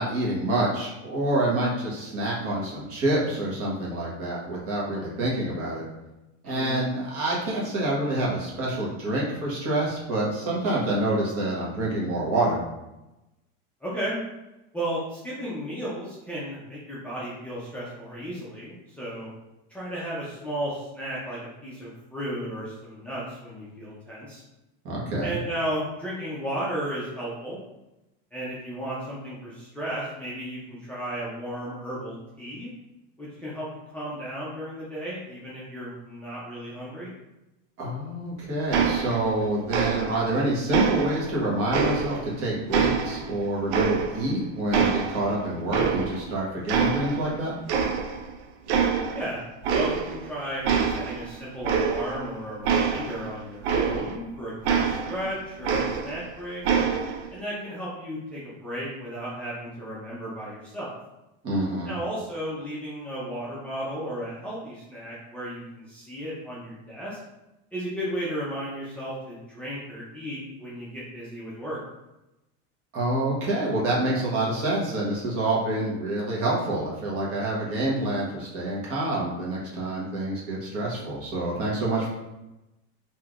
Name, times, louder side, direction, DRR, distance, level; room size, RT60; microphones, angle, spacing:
voice 1, 0.0-5.9 6.4-12.6 24.8-25.4 37.8-47.6 61.4-61.9 72.9-82.1, right 1 dB, 40° right, -5 dB, 1.2 m, -27 dB
voice 2, 6.4-6.8 13.8-14.2 14.7-19.3 19.7-24.4 25.2-27.6 28.3-32.7 33.2-33.7 33.9-37.1 49.1-49.4 49.7-56.6 57.3-60.9 61.8-67.2 67.7-71.8, right 1 dB, 5° left, -9 dB, 0.5 m, -34 dB
sound 1, 38.7-39.4 39.7-40.3 40.7-42.3 42.7-44.4 44.7-46.3 46.7-47.4 47.7-48.3 48.7-49.3 49.6-50.3 50.6-54.3 54.7-56.3 56.6-57.3, right 6 dB, 85° right, 0.5 m, -26 dB
3.2 x 2.8 x 2.4 m, 0.96 s
supercardioid pair, 145°, 34 cm